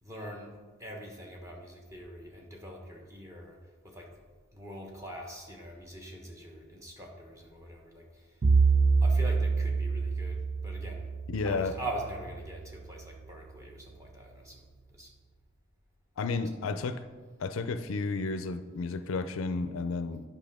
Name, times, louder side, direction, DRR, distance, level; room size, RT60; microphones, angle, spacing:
voice 1, 0.0-3.6 3.8-4.1 4.5-8.1 9.0-11.1 11.4-14.6 14.9-15.1, right 1 dB, 15° right, 0 dB, 1.1 m, -43 dB
Bowed string instrument, 8.4-12.6, right 4 dB, 35° right, 0.3 m, -26 dB
voice 2, 11.3-11.8 16.2-17.0 17.4-20.2, left 4 dB, 65° left, 10 dB, 0.4 m, -32 dB
10.0 x 5.4 x 3.5 m, 1.4 s
head